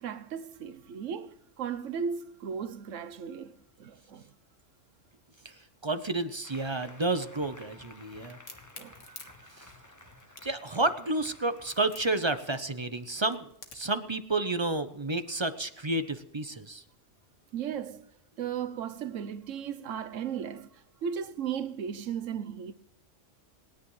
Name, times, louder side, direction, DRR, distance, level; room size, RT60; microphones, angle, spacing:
voice 1, 0.0-4.3 8.8-9.3 17.5-18.1 18.4-22.7, right 7 dB, 90° right, 1.2 m, -36 dB
voice 2, 5.4-8.4 9.6-9.7 10.4-16.8, right 2 dB, 25° right, 0.7 m, -31 dB
Applause, 6.4-12.1, left 2 dB, 15° left, 1.0 m, -53 dB
Crack, 8.3-14.0, left 4 dB, 75° left, 2.0 m, -50 dB
27.5 x 10.0 x 3.2 m
omnidirectional pair, 1.3 m